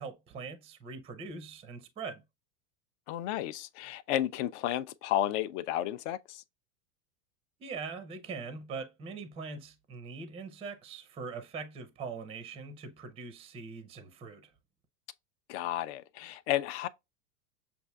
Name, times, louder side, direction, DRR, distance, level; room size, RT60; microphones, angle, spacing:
voice 1, 0.0-2.2 7.6-14.5, right 4 dB, 15° right, 0.5 m, -42 dB
voice 2, 3.1-6.4 15.5-16.9, left 13 dB, 50° left, 0.5 m, -32 dB
6.8 x 2.6 x 2.2 m
hypercardioid pair, 115°, 47 cm